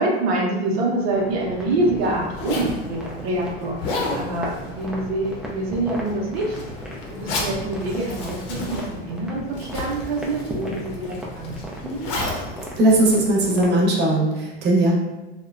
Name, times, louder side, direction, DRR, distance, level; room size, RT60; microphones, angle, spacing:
voice 1, 0.0-6.6 7.1-11.5 11.8-12.1, right 2 dB, 80° right, -2 dB, 0.7 m, -26 dB
Zipper (clothing), 1.1-13.8, left 2 dB, 70° left, 0.8 m, -33 dB
sound 1, 1.1-13.9, equal, 5° right, 0.3 m, -37 dB
voice 2, 12.8-14.9, right 1 dB, 35° right, -3 dB, 0.8 m, -18 dB
2.8 x 2.1 x 2.4 m, 1.1 s
supercardioid pair, 110°, 31 cm